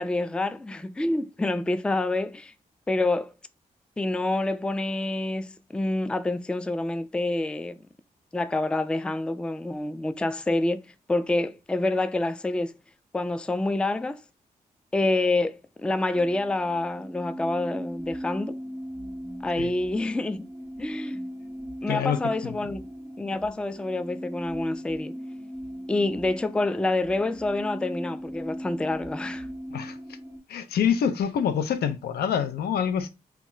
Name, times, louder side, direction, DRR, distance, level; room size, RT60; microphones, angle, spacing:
voice 1, 0.0-2.5 2.9-3.3 4.0-7.7 8.3-12.7 13.1-14.2 14.9-18.6 19.4-20.5 20.8-21.2 21.8-22.8 23.2-25.1 25.9-29.5, left 2 dB, 5° left, 0.3 m, -27 dB
sound 1, 16.1-30.4, equal, 20° right, 0.8 m, -38 dB
voice 2, 21.9-22.2 22.4-22.6 29.7-30.0 30.5-33.1, left 8 dB, 80° left, 0.4 m, -26 dB
2.2 x 2.0 x 3.7 m
supercardioid pair, 45°, 16 cm